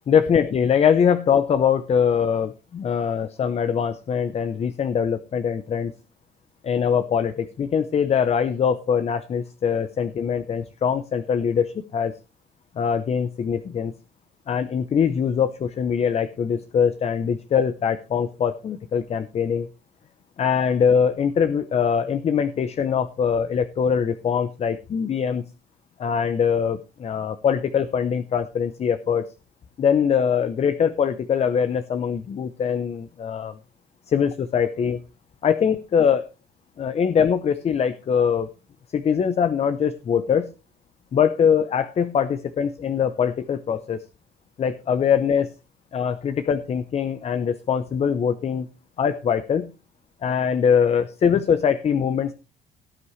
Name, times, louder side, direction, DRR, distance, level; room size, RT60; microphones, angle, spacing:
voice 1, 0.1-5.9 6.6-12.1 12.8-13.9 14.5-19.7 20.4-25.4 26.0-29.3 29.8-33.6 34.1-35.0 35.4-36.2 36.8-38.5 38.9-40.5 41.1-44.0 44.6-45.5 45.9-48.7 49.0-49.7 50.2-52.3, left 7 dB, 40° left, 12 dB, 0.8 m, -22 dB
18.0 x 8.5 x 3.2 m, 0.30 s
cardioid pair, 110°, 17 cm